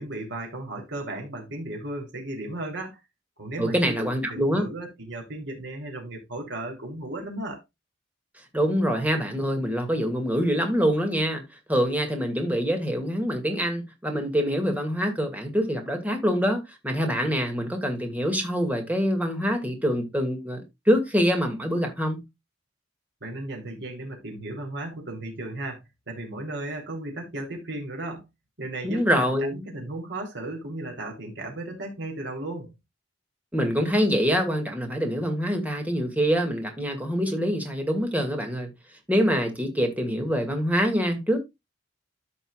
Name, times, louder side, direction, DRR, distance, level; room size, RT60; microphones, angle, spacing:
voice 1, 0.0-3.0 3.4-7.6 23.2-28.3 28.6-32.7, right 2 dB, 60° right, 3.5 m, -35 dB
voice 2, 3.6-4.6 8.5-11.4 11.7-22.2 28.8-29.6 33.5-38.7 39.1-41.4, equal, 10° right, 2.1 m, -25 dB
13.5 x 5.4 x 2.4 m
head